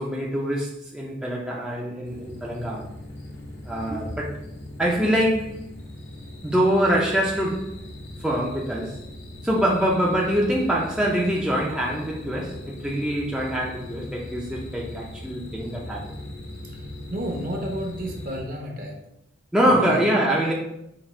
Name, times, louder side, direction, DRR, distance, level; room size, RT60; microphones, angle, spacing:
voice 1, 0.0-2.9 3.6-4.3 4.8-5.6 6.4-7.7 8.2-9.0 9.4-16.2 19.5-20.5, equal, 5° right, -4 dB, 0.4 m, -24 dB
sound 1, 2.0-18.4, left 1 dB, 60° left, 0.8 m, -39 dB
voice 2, 17.1-18.9 19.7-20.0, equal, 45° right, 1 dB, 0.8 m, -31 dB
5.0 x 2.7 x 3.2 m, 0.82 s
head